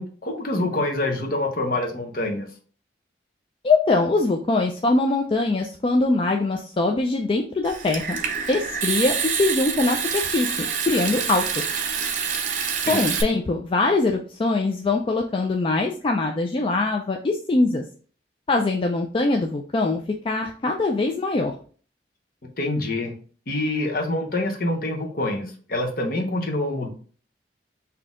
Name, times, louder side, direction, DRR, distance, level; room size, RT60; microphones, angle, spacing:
voice 1, 0.0-2.5 12.9-13.1 22.4-23.1 23.5-26.9, left 2 dB, 55° left, 2 dB, 0.9 m, -26 dB
voice 2, 3.6-8.2 8.5-11.7 12.9-17.8 18.5-20.0 20.2-21.5, left 3 dB, 30° left, 2 dB, 0.3 m, -22 dB
Water tap faucet / Sink (filling or washing) / Trickle dribble, 7.6-13.2, right 6 dB, 45° right, 0.5 m, -27 dB
4.1 x 2.8 x 3.6 m, 0.42 s
head